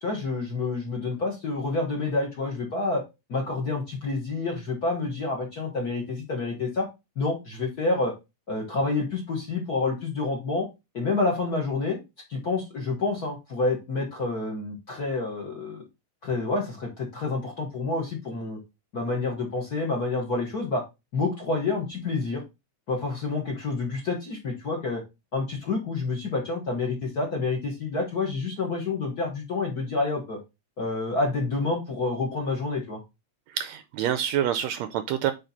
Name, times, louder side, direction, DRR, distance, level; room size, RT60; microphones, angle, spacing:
voice 1, 0.0-3.0 3.3-6.9 7.1-8.1 8.5-10.7 10.9-12.0 12.3-15.8 16.2-18.6 18.9-20.8 21.1-22.4 22.9-25.0 25.3-30.4 30.8-33.0, left 3 dB, 40° left, 0 dB, 1.5 m, -28 dB
voice 2, 33.5-35.3, right 10 dB, 80° right, 10 dB, 1.7 m, -27 dB
8.2 x 3.7 x 4.2 m, 0.24 s
omnidirectional pair, 3.4 m